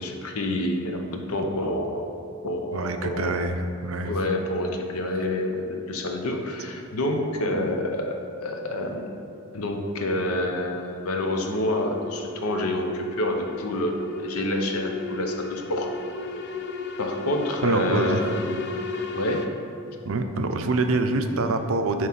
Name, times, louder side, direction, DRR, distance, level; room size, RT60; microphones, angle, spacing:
voice 1, 0.0-2.0 2.4-3.4 4.0-9.1 9.5-15.9 17.0-18.6 19.1-19.4, left 1 dB, 90° left, 3 dB, 0.8 m, -28 dB
voice 2, 2.7-4.1 17.6-18.4 20.0-22.1, right 2 dB, 75° right, 7 dB, 0.6 m, -25 dB
sound 1, 9.1-19.5, left 3 dB, 50° left, 0.5 m, -35 dB
9.4 x 3.2 x 5.8 m, 2.7 s
head